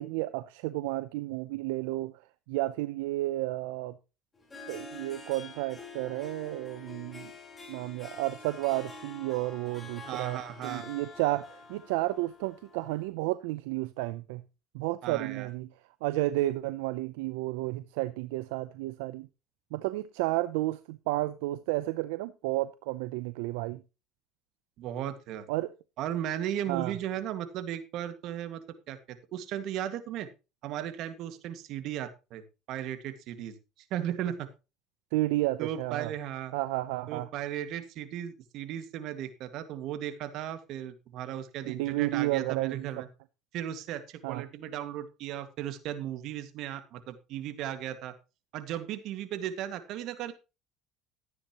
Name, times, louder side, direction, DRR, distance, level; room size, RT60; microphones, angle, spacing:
voice 1, 0.0-2.2 2.5-4.0 4.7-7.3 7.7-14.4 14.7-15.7 16.0-19.3 19.7-23.8 25.5-25.7 26.7-27.0 35.1-36.1 36.5-37.3 41.7-43.0 44.2-44.4, right 18 dB, 90° right, 0.5 m, -32 dB
Harp, 4.3-13.1, left 3 dB, 25° left, 4.4 m, -47 dB
voice 2, 10.0-10.9 15.0-15.5 24.8-25.5 26.0-30.3 30.6-33.5 33.9-34.5 35.6-36.5 37.1-43.1 43.5-48.1 48.5-50.3, right 11 dB, 65° right, 1.9 m, -36 dB
13.5 x 9.7 x 3.0 m
supercardioid pair, 100°, 0 cm